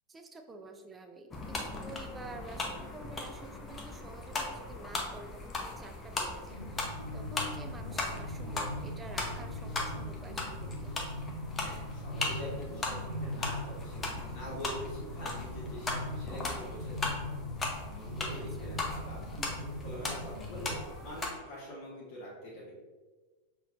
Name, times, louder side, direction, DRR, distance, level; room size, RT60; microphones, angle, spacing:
voice 1, 0.1-11.0 18.3-18.7, right 2 dB, 15° right, 5 dB, 0.4 m, -49 dB
sound 1, 1.3-21.3, left 2 dB, 15° left, 0.7 m, -38 dB
sound 2, 6.5-20.8, left 1 dB, 90° right, 0.7 m, -41 dB
voice 2, 11.6-17.4 17.9-20.8 21.0-22.7, equal, 45° left, -6 dB, 1.2 m, -45 dB
5.7 x 3.0 x 2.5 m, 1.3 s
figure-of-eight pair, 90°, 0 cm